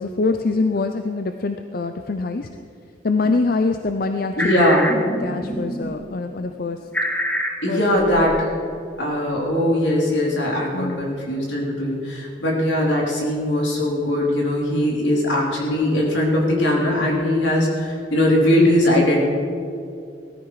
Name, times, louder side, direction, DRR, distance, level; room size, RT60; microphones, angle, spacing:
voice 1, 0.0-2.5 3.0-4.7 5.0-6.8 7.7-7.8 10.7-11.1, left 3 dB, 50° left, 7 dB, 0.5 m, -24 dB
sound 1, 3.2-3.4 3.8-6.0 6.4-8.5, equal, 10° left, 1.2 m, -27 dB
voice 2, 4.4-5.0 7.6-8.5 9.0-19.2, left 1 dB, 75° left, -3 dB, 3.8 m, -20 dB
19.5 x 13.5 x 4.8 m, 2.5 s
head